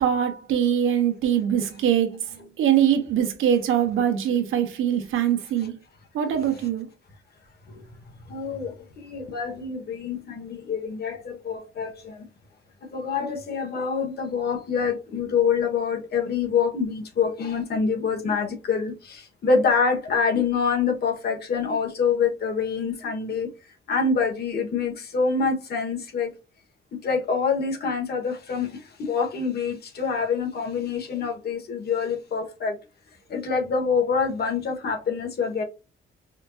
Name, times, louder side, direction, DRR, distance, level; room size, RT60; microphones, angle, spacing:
voice 1, 0.0-5.8 6.1-6.9, right 9 dB, 85° right, 1.1 m, -23 dB
voice 2, 8.3-12.3 12.9-23.5 23.9-26.3 27.0-32.8 33.3-35.6, left 5 dB, 50° left, 1.3 m, -26 dB
5.0 x 2.6 x 2.4 m
cardioid pair, 140°, 20 cm